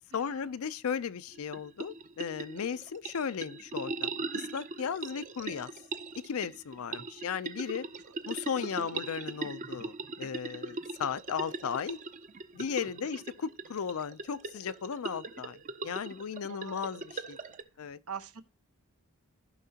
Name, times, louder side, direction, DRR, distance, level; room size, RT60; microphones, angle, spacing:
voice 1, 0.1-5.7 6.2-7.9 8.3-12.0 12.5-17.4 17.8-18.0, left 7 dB, 75° left, 0.5 m, -36 dB
sound 1, 1.3-17.6, right 3 dB, 35° right, 0.5 m, -40 dB
voice 2, 8.6-9.0 16.5-17.0 18.1-18.4, right 7 dB, 75° right, 0.9 m, -44 dB
15.0 x 5.8 x 2.8 m
head